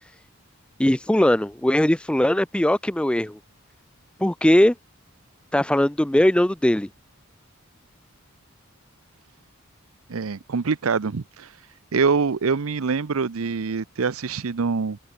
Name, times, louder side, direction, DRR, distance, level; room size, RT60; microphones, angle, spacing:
voice 1, 0.8-3.4 4.2-4.7 5.5-6.9, left 1 dB, 5° left, 0.4 m, -20 dB
voice 2, 10.1-11.5 11.9-15.0, right 5 dB, 75° right, 0.7 m, -24 dB
head